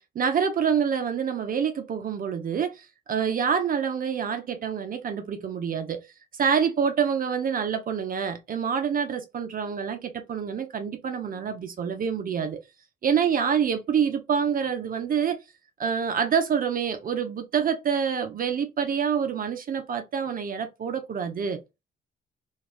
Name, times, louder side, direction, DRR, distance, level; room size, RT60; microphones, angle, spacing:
voice 1, 0.0-6.0 6.3-12.6 13.0-15.4 15.8-21.6, right 7 dB, 45° right, 0.5 m, -27 dB
3.1 x 2.3 x 2.4 m
cardioid pair, 90°, 20 cm